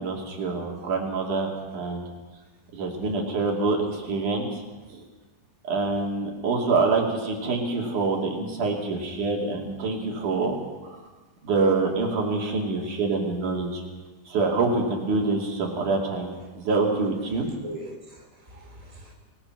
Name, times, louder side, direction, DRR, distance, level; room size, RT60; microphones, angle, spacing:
voice 1, 0.0-2.0 2.7-4.5 4.9-5.0 5.6-10.5 10.8-11.0 11.4-13.8 14.3-17.5, right 3 dB, 70° right, 0 dB, 4.2 m, -26 dB
voice 2, 17.3-19.1, equal, 10° right, 0 dB, 4.1 m, -42 dB
27.5 x 19.5 x 6.0 m, 1.2 s
omnidirectional pair, 3.7 m